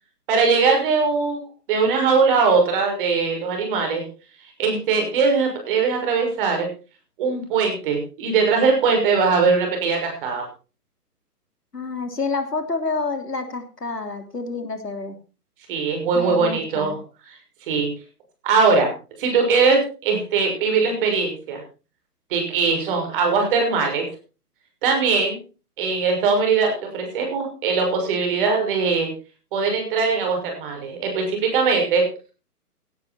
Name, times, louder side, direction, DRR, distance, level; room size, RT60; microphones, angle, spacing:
voice 1, 0.3-4.0 4.6-6.7 7.2-10.5 15.7-17.0 17.7-17.9 18.4-18.9 19.2-21.6 22.3-24.1 24.8-25.4 25.8-29.1 29.5-32.0, right 4 dB, 35° right, 3 dB, 6.3 m, -21 dB
voice 2, 11.7-15.2 16.1-17.0, left 3 dB, 85° left, 7 dB, 3.3 m, -28 dB
17.0 x 11.0 x 4.4 m, 0.34 s
figure-of-eight pair, 135°, 47 cm